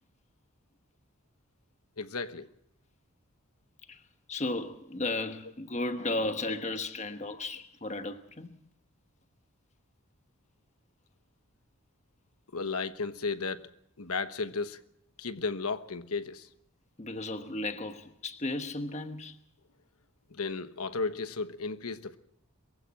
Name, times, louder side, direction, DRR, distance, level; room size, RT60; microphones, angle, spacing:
voice 1, 2.0-2.5 12.5-13.7 14.0-14.8 15.2-16.5 20.3-22.2, left 4 dB, 80° left, 1.2 m, -34 dB
voice 2, 4.3-8.5 17.0-19.4, left 2 dB, 30° left, 1.2 m, -34 dB
23.0 x 15.5 x 7.5 m
head